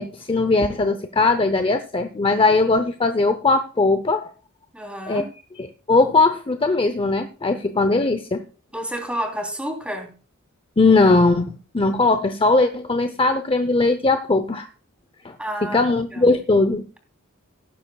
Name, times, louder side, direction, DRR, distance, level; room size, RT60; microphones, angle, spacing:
voice 1, 0.0-4.3 5.1-5.2 5.6-8.4 10.8-14.7 15.2-15.3 15.7-16.8, left 3 dB, 25° left, 9 dB, 0.6 m, -19 dB
voice 2, 4.7-5.3 8.7-10.1 15.4-15.8 16.1-16.4, equal, 5° right, 3 dB, 3.2 m, -30 dB
18.0 x 9.9 x 2.3 m, 0.36 s
head